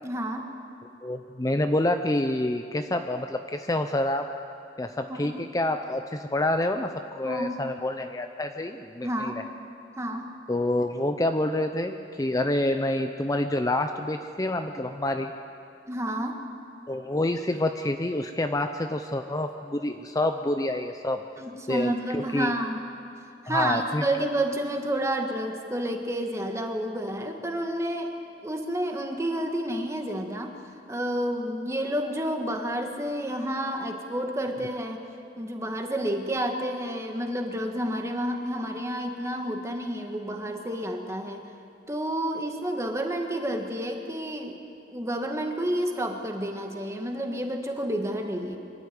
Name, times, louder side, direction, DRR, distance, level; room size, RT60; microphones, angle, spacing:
voice 1, 0.0-0.5 5.1-5.4 7.2-7.6 9.0-9.4 10.0-10.3 15.9-16.4 21.4-22.8 23.4-28.1 28.4-30.6 30.9-35.0 35.4-41.4 41.9-44.6 44.9-48.6, right 1 dB, 15° right, 3 dB, 1.7 m, -30 dB
voice 2, 1.0-4.3 4.8-9.4 10.5-15.3 16.9-21.2 21.7-22.5 23.5-24.0, left 1 dB, 20° left, 6 dB, 0.6 m, -27 dB
24.0 x 13.0 x 9.4 m, 2.7 s
head